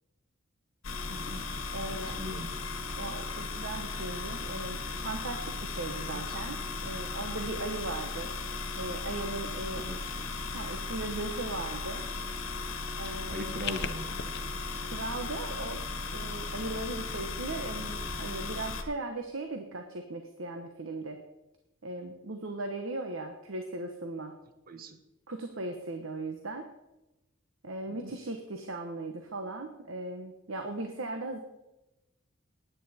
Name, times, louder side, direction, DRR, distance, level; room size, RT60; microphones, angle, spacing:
sound 1, 0.8-18.8, left 3 dB, 70° left, 1.4 m, -36 dB
voice 1, 1.1-1.4 2.0-2.5 5.9-6.4 9.8-10.0 13.3-14.3 24.7-25.0 27.9-28.1, equal, 45° right, 9 dB, 1.1 m, -41 dB
voice 2, 1.7-2.2 3.0-6.6 6.8-8.3 8.8-9.8 10.5-12.0 13.0-13.8 14.8-15.8 16.1-21.2 21.8-24.3 25.3-26.7 27.6-31.4, right 2 dB, 65° right, 5 dB, 1.1 m, -38 dB
sound 2, 12.5-14.4, left 7 dB, 55° left, 0.8 m, -40 dB
16.0 x 10.0 x 4.3 m, 0.98 s
head